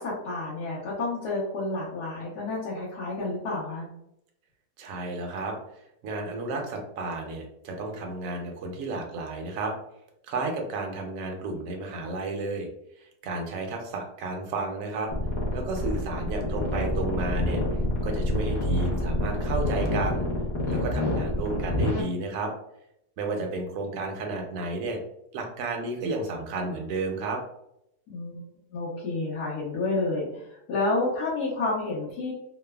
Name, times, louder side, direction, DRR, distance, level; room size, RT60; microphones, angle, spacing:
voice 1, 0.0-3.9 18.5-18.6 28.1-28.4 28.7-32.3, left 2 dB, 80° left, -8 dB, 1.3 m, -30 dB
voice 2, 4.8-5.6 6.0-9.7 10.3-12.7 13.0-15.1 15.5-17.6 18.0-20.3 20.7-22.5 23.2-25.0 25.3-27.4, right 3 dB, 70° right, 2 dB, 0.9 m, -32 dB
sound 1, 15.1-22.0, left 1 dB, 60° left, 0.4 m, -27 dB
3.1 x 2.0 x 2.2 m, 0.79 s
omnidirectional pair, 1.7 m